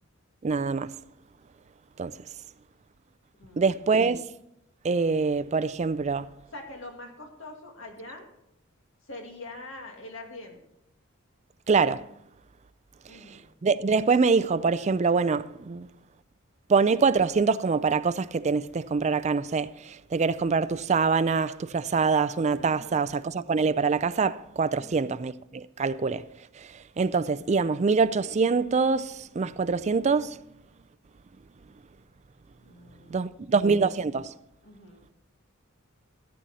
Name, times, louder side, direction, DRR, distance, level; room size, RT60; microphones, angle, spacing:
voice 1, 0.4-0.9 2.0-2.1 3.6-4.2 4.8-6.3 11.7-12.0 13.6-15.9 16.7-26.2 26.6-26.7 27.0-30.4 33.1-34.3, right 4 dB, 35° right, 0.4 m, -24 dB
voice 2, 3.3-3.7 6.5-8.3 9.0-10.6 13.1-13.5 22.6-23.0 24.8-25.1 32.6-33.6 34.6-35.0, left 2 dB, 65° left, 2.1 m, -44 dB
14.0 x 8.9 x 4.2 m
head